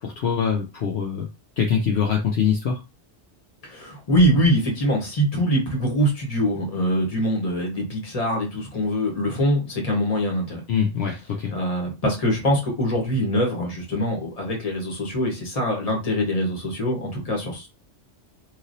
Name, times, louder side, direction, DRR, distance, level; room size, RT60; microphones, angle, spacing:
voice 1, 0.0-1.3 1.6-2.8 10.7-11.5, left 7 dB, 65° left, 0 dB, 0.8 m, -23 dB
voice 2, 3.6-10.6 11.5-17.7, equal, 35° left, 0 dB, 1.2 m, -23 dB
3.1 x 2.6 x 2.6 m, 0.27 s
omnidirectional pair, 1.2 m